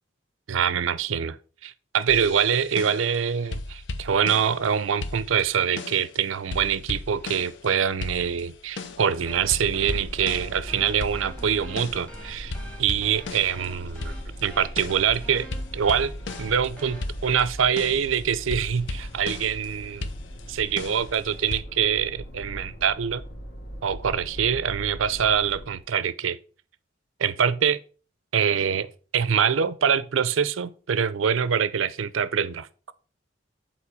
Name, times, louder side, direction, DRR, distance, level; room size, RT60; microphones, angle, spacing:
voice 1, 0.5-1.4 1.6-12.5 12.8-14.1 14.4-15.5 15.7-16.1 16.4-20.1 20.5-23.2 23.8-26.4 27.2-27.8 28.3-28.9 29.1-32.9, right 7 dB, 90° right, 0.5 m, -24 dB
sound 1, 2.1-3.2 3.5-4.7 5.0-6.2 6.5-7.7 8.0-9.1 9.5-12.1 12.5-16.7 17.0-19.7 20.0-21.6, left 3 dB, 70° left, 0.7 m, -36 dB
sound 2, 8.6-25.9, equal, 55° left, 1.6 m, -40 dB
sound 3, 9.2-17.4, equal, 5° left, 1.3 m, -46 dB
7.2 x 4.4 x 4.9 m
head